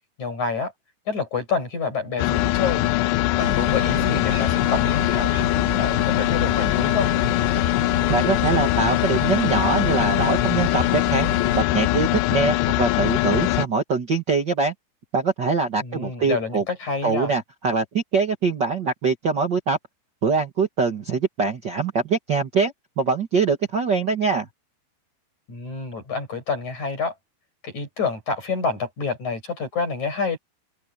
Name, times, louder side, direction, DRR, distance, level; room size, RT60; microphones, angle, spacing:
voice 1, 0.2-0.7 1.1-2.9 3.4-7.1 15.8-17.3 25.5-27.1 27.6-30.4, left 4 dB, 40° left, 8.8 m, -28 dB
sound 1, 2.2-13.7, left 17 dB, 80° left, 2.8 m, -22 dB
sound 2, 3.4-11.6, right 3 dB, 40° right, 5.8 m, -34 dB
voice 2, 8.1-11.3 11.5-14.7 15.1-16.6 17.0-19.8 20.2-24.5, right 4 dB, 70° right, 1.0 m, -23 dB
open air
omnidirectional pair, 5.0 m